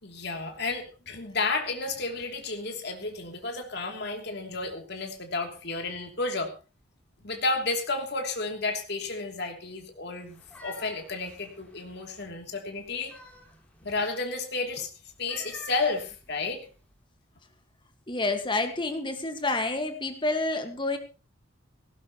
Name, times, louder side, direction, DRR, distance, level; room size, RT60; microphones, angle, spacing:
voice 1, 0.0-6.5 7.2-13.1 13.8-14.9 15.2-16.7, left 3 dB, 55° left, 3 dB, 3.0 m, -32 dB
sound 1, 10.2-12.3 12.8-14.0 15.1-16.9, left 1 dB, 5° left, 3.3 m, -49 dB
voice 2, 18.1-21.0, left 2 dB, 25° left, 7 dB, 1.8 m, -28 dB
18.0 x 17.0 x 3.1 m, 0.31 s
head